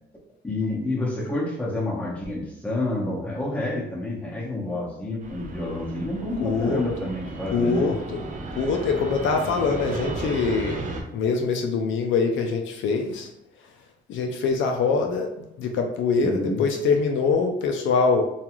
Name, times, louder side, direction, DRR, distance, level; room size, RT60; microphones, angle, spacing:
voice 1, 0.4-7.9 16.2-16.6, left 2 dB, 5° left, -4 dB, 0.9 m, -29 dB
Fixed-wing aircraft airplane, 5.2-11.0, right 2 dB, 40° right, 0.5 m, -34 dB
voice 2, 6.4-6.8 7.5-10.8 11.1-13.3 14.1-18.2, left 4 dB, 75° left, 3 dB, 0.4 m, -24 dB
2.4 x 2.3 x 2.9 m, 0.84 s
cardioid pair, 90°, 20 cm